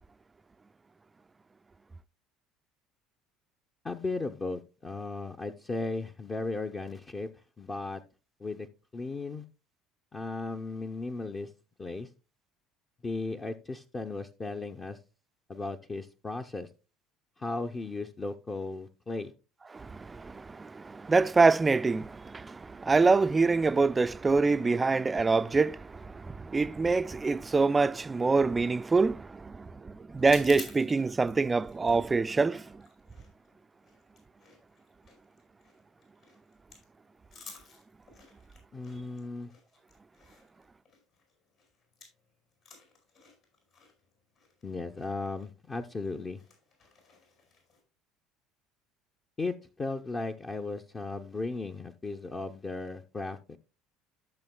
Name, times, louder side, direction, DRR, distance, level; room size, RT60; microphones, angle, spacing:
voice 1, 3.8-7.3 7.6-8.0 8.4-8.7 8.9-9.4 10.1-11.5 11.8-12.1 13.0-15.0 15.5-16.7 17.4-19.3 38.7-39.5 44.6-46.4 49.4-53.6, left 3 dB, 30° left, 0.6 m, -36 dB
voice 2, 19.7-32.8, right 4 dB, 20° right, 0.3 m, -26 dB
sound 1, 30.2-42.3 42.5-47.8, left 4 dB, 65° left, 5.2 m, -53 dB
13.5 x 6.9 x 2.2 m
hypercardioid pair, 75°, 0 cm